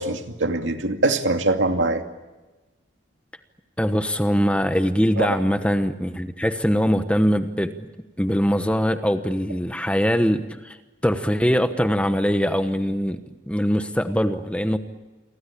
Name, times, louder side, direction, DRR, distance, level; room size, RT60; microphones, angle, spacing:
voice 1, 0.0-2.0 5.2-5.4, right 2 dB, 75° right, 5 dB, 2.4 m, -23 dB
voice 2, 3.8-7.8 8.2-10.8 11.0-13.2 13.5-14.8, equal, 5° left, 9 dB, 1.1 m, -22 dB
29.5 x 23.5 x 8.6 m, 1.1 s
head